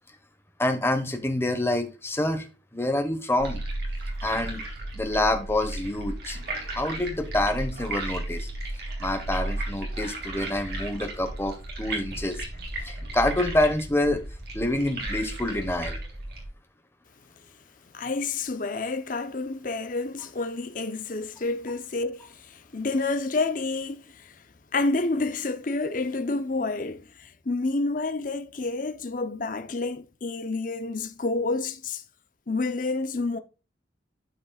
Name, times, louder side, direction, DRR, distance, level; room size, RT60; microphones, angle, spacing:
voice 1, 0.6-2.5 2.7-3.6 4.2-4.6 4.9-6.4 6.7-8.5 9.0-12.4 12.8-14.2 14.5-16.0, left 1 dB, 15° left, 1.2 m, -27 dB
sound 1, 3.4-16.5, right 1 dB, 55° right, 3.1 m, -34 dB
voice 2, 17.9-24.4 24.7-32.0 32.5-33.4, left 3 dB, 45° left, 0.7 m, -29 dB
12.5 x 5.3 x 2.3 m
head